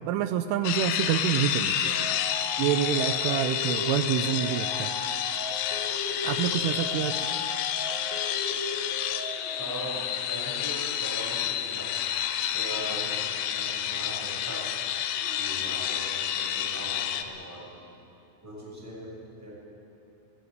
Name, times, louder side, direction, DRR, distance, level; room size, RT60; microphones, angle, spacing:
voice 1, 0.1-1.9 2.6-4.9 6.2-7.3, right 10 dB, 85° right, 9 dB, 3.1 m, -27 dB
sound 1, 0.7-17.2, left 10 dB, 90° left, 3.6 m, -30 dB
sound 2, 1.8-9.3, left 2 dB, 35° left, 4.4 m, -37 dB
Dog, 9.3-10.3 12.2-13.7 15.1-15.9, left 2 dB, 55° left, 9.8 m, -51 dB
voice 2, 9.6-12.0 12.5-13.1 13.5-14.7 15.4-17.9 18.4-19.6, equal, 5° right, -5 dB, 6.1 m, -40 dB
21.5 x 19.5 x 7.9 m, 2.7 s
omnidirectional pair, 5.7 m